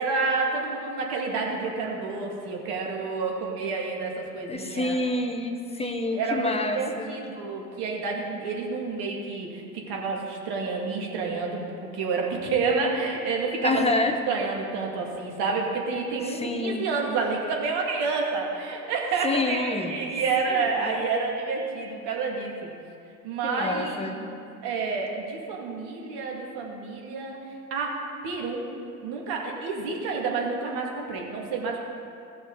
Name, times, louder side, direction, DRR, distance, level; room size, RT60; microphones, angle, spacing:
voice 1, 0.0-5.0 5.8-22.7 23.2-24.3 24.6-27.4 27.7-28.7 29.0-31.8, right 4 dB, 60° right, 0 dB, 2.3 m, -29 dB
voice 2, 4.5-7.1 13.6-14.1 16.3-16.9 19.2-20.0 20.5-21.0 23.4-24.3, left 2 dB, 15° left, 5 dB, 1.1 m, -28 dB
16.5 x 6.2 x 3.9 m, 2.5 s
hypercardioid pair, 75°, 44 cm